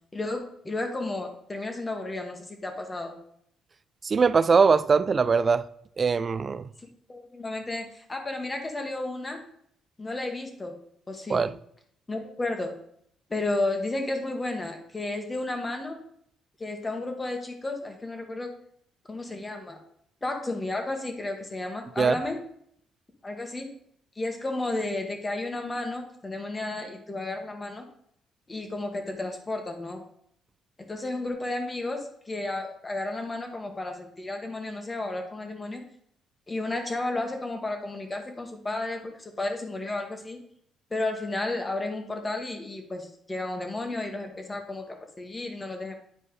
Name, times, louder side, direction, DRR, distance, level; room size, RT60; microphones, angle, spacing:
voice 1, 0.1-3.2 7.1-9.4 10.0-10.7 11.1-11.4 12.1-12.7 13.3-16.0 16.6-18.5 19.1-19.8 20.2-22.4 23.2-23.7 24.1-27.8 28.5-30.0 30.9-35.8 36.5-40.4 40.9-45.9, left 2 dB, 20° left, 1.4 m, -32 dB
voice 2, 4.0-5.6 6.0-6.7 11.3-11.5 22.0-22.2, right 5 dB, 35° right, 0.3 m, -21 dB
10.5 x 4.4 x 3.2 m
cardioid pair, 95°, 0 cm